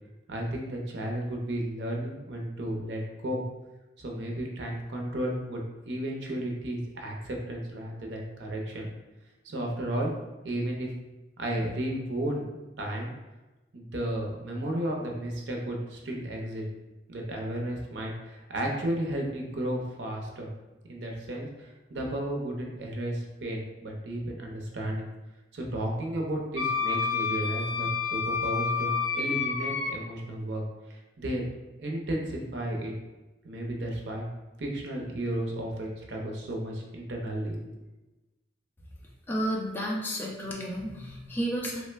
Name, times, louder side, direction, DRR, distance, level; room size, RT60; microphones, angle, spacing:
voice 1, 0.3-3.4 4.0-8.9 9.4-10.1 10.4-10.9 11.4-13.1 13.7-16.6 17.1-20.5 20.9-25.1 25.5-30.6 30.9-31.5 31.8-32.9 33.4-34.3 34.6-37.7, right 1 dB, 85° right, 0 dB, 0.6 m, -33 dB
Wind instrument woodwind instrument, 26.6-29.9, left 6 dB, 90° left, 0.5 m, -29 dB
voice 2, 39.3-41.8, equal, 10° left, -2 dB, 0.3 m, -31 dB
3.1 x 2.0 x 3.2 m, 1.1 s
head